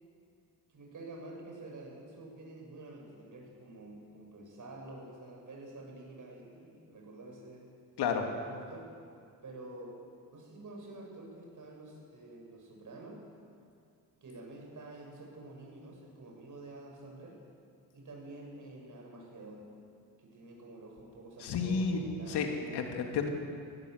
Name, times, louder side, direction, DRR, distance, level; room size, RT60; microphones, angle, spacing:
voice 1, 0.7-7.7 8.4-8.9 9.4-10.0 10.3-13.2 14.2-17.4 17.9-19.7 20.2-22.8, right 2 dB, 50° right, 0 dB, 7.0 m, -48 dB
voice 2, 8.0-8.3 21.4-22.0 22.3-22.5 22.7-23.3, left 6 dB, 80° left, 3 dB, 2.6 m, -31 dB
19.5 x 16.5 x 8.1 m, 2.4 s
cardioid pair, 80°, 39 cm